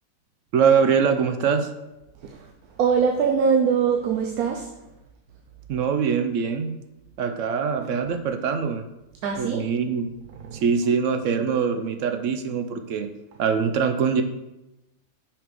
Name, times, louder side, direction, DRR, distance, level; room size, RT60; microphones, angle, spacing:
voice 1, 0.5-1.7 5.7-6.7 7.2-8.8 9.4-10.1 10.5-13.1 13.4-14.2, right 6 dB, 65° right, 7 dB, 0.9 m, -23 dB
voice 2, 2.1-4.7 7.8-7.9 9.2-9.6 10.4-10.6, right 6 dB, 90° right, 1 dB, 1.2 m, -23 dB
5.9 x 4.8 x 5.2 m, 0.96 s
omnidirectional pair, 1.5 m